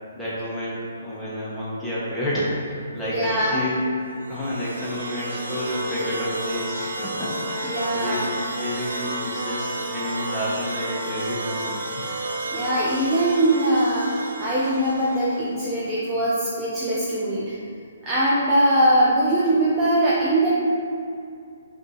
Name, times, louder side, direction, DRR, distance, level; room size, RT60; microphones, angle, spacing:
voice 1, 0.1-8.3 8.5-12.1, equal, 5° left, -10 dB, 1.0 m, -30 dB
voice 2, 3.0-3.7 7.6-8.3 12.5-17.6 18.0-20.5, right 1 dB, 15° right, -9 dB, 0.5 m, -21 dB
sound 1, 4.2-15.4, right 1 dB, 75° right, 0.6 m, -31 dB
5.2 x 2.6 x 3.0 m, 2.4 s
hypercardioid pair, 155°, 0 cm